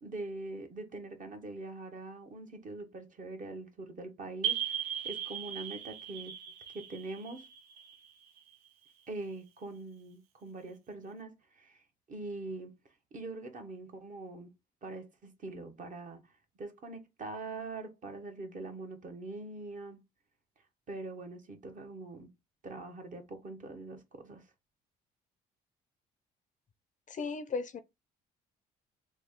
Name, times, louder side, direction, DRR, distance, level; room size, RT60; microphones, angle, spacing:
voice 1, 0.0-6.3 6.7-7.5 9.1-12.7 13.1-14.5 14.8-20.0 20.9-22.3 22.6-24.5, right 2 dB, 45° right, 1.0 m, -43 dB
sound 1, 4.4-8.9, right 9 dB, 85° right, 0.6 m, -38 dB
voice 2, 27.1-27.8, left 4 dB, 40° left, 0.5 m, -35 dB
3.1 x 2.1 x 3.7 m
hypercardioid pair, 55°, 19 cm